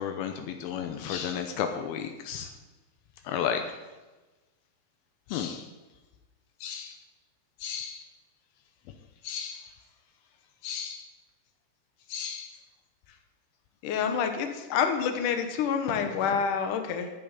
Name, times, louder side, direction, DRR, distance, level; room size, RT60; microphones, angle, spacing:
voice 1, 0.0-2.5 3.3-3.6 5.3-5.7 6.6-7.0 7.6-8.1 9.2-9.7 10.6-11.0 12.1-12.5, left 8 dB, 90° left, 6 dB, 2.1 m, -33 dB
voice 2, 13.8-17.1, left 7 dB, 70° left, 6 dB, 2.0 m, -27 dB
12.5 x 7.8 x 9.9 m, 1.2 s
omnidirectional pair, 5.5 m